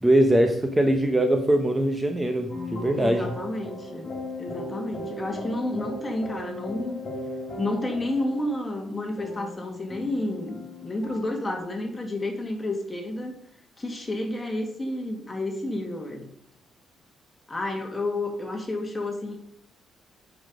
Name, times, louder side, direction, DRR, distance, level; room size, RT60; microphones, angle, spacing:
voice 1, 0.0-3.3, right 1 dB, 15° right, 5 dB, 0.9 m, -22 dB
sound 1, 2.5-11.6, left 1 dB, 40° left, 2.8 m, -37 dB
voice 2, 3.0-4.1 4.4-7.0 7.6-13.4 13.8-16.3 17.5-19.4, left 1 dB, 20° left, 3 dB, 2.0 m, -30 dB
7.8 x 5.6 x 5.2 m, 0.69 s
cardioid pair, 90°, 0 cm